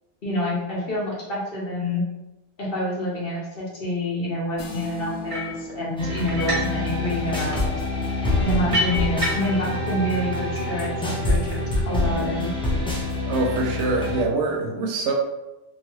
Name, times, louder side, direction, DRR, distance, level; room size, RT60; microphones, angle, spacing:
voice 1, 0.2-2.0 2.6-7.8 8.4-11.4 11.9-12.5, left 1 dB, 55° left, -5 dB, 1.1 m, -27 dB
sound 1, 4.6-14.2, left 1 dB, 85° left, 1.0 m, -41 dB
sound 2, 5.3-5.6 6.3-6.8 7.1-9.7, equal, 35° right, 0.7 m, -29 dB
sound 3, 6.0-14.2, left 2 dB, 10° left, 0.3 m, -26 dB
voice 2, 13.2-15.1, right 3 dB, 80° right, 1 dB, 0.9 m, -24 dB
2.7 x 2.5 x 3.1 m, 0.99 s
omnidirectional pair, 1.2 m